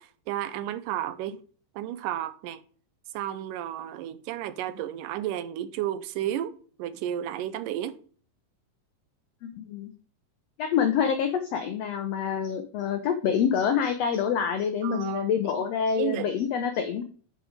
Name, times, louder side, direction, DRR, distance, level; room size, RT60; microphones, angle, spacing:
voice 1, 0.0-1.4 1.8-2.6 3.1-8.0 14.8-15.7 16.0-16.3, right 12 dB, 80° right, 2.2 m, -33 dB
voice 2, 9.4-9.9 10.6-17.0, left 7 dB, 85° left, 1.4 m, -26 dB
8.9 x 5.0 x 5.0 m
omnidirectional pair, 3.9 m